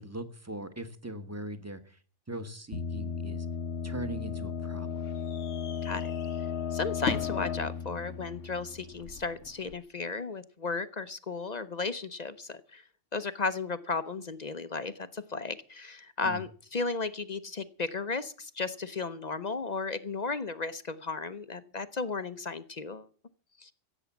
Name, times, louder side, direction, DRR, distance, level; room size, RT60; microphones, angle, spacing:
voice 1, 0.0-2.0 2.3-3.5 3.8-4.9 16.2-16.4, right 1 dB, 15° right, 11 dB, 1.2 m, -40 dB
sound 1, 2.7-9.3, left 6 dB, 60° left, 1.1 m, -35 dB
sound 2, 3.8-9.8, left 5 dB, 85° left, 1.5 m, -42 dB
voice 2, 6.7-12.8 13.1-23.1 23.6-23.7, left 4 dB, 40° left, 13 dB, 0.7 m, -34 dB
16.0 x 8.2 x 7.2 m, 0.43 s
omnidirectional pair, 1.3 m